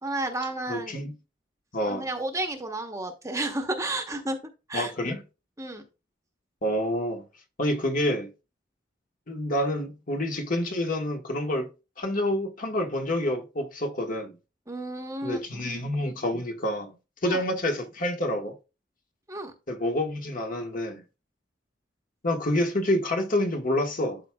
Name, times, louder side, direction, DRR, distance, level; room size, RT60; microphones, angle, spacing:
voice 1, 0.0-1.0 1.9-4.4 4.7-4.9 5.6-5.8 14.7-15.6 17.2-17.4 19.3-19.5, right 2 dB, 15° right, 1.0 m, -32 dB
voice 2, 0.7-1.1 1.7-2.1 4.7-5.2 6.6-7.2 7.6-8.3 9.3-11.7 12.0-14.4 15.2-16.9 17.2-18.5 19.7-21.0 22.2-24.2, left 1 dB, 45° left, 1.4 m, -28 dB
12.0 x 4.7 x 2.3 m
head